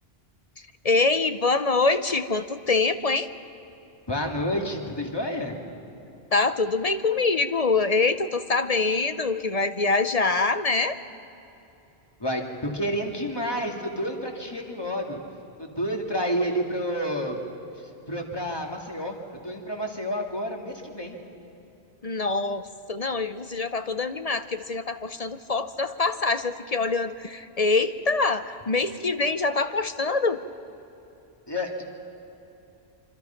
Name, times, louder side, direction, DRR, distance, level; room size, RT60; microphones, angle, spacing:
voice 1, 0.8-3.3 6.3-11.0 22.0-30.4, left 3 dB, 40° left, 11 dB, 0.7 m, -24 dB
voice 2, 4.1-5.6 12.2-15.2 15.6-17.4 17.7-19.2 19.4-21.2 31.5-31.8, equal, 20° left, 1 dB, 2.4 m, -29 dB
26.0 x 25.5 x 5.8 m, 2.9 s
omnidirectional pair, 1.1 m